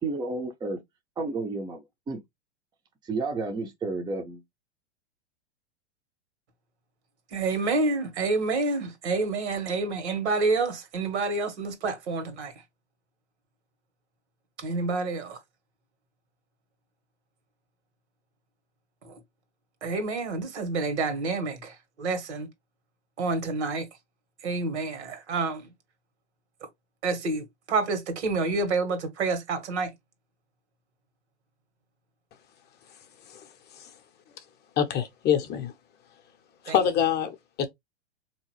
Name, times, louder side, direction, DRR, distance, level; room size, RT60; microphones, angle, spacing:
voice 1, 0.0-0.8 1.2-2.2 3.0-4.4, right 3 dB, 15° right, 0.6 m, -31 dB
voice 2, 7.3-12.5 14.6-15.4 19.1-19.2 19.8-21.7 22.0-22.5 23.2-23.9 24.4-25.7 27.0-29.9 36.7-36.8, right 3 dB, 75° right, 1.6 m, -28 dB
voice 3, 34.8-35.7 36.6-37.7, left 9 dB, 30° left, 0.7 m, -26 dB
3.8 x 2.9 x 3.0 m
hypercardioid pair, 105°, 35 cm